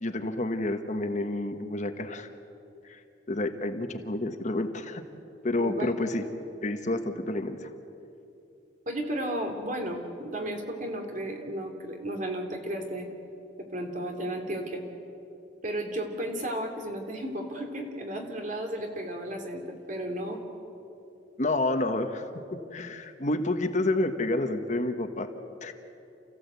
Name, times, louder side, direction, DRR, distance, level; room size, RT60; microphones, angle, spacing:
voice 1, 0.0-2.3 2.8-3.0 3.3-5.0 5.4-6.2 6.6-7.7 21.4-25.3 25.6-25.7, left 2 dB, 40° left, 7 dB, 1.2 m, -29 dB
voice 2, 5.6-5.9 8.9-13.1 13.6-14.8 15.6-20.4, right 1 dB, 45° right, 3 dB, 3.0 m, -34 dB
29.5 x 15.0 x 8.3 m, 2.8 s
head